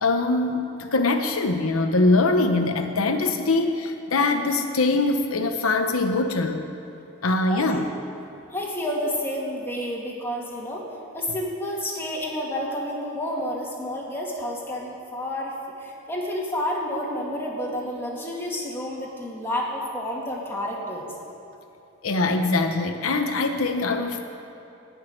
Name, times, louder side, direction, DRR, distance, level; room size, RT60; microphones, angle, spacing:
voice 1, 0.0-6.6 7.2-7.9 22.0-24.2, left 3 dB, 80° left, 5 dB, 0.9 m, -23 dB
voice 2, 8.5-10.8 11.1-21.1, left 1 dB, 10° left, -3 dB, 2.2 m, -30 dB
18.5 x 6.5 x 9.1 m, 2.8 s
head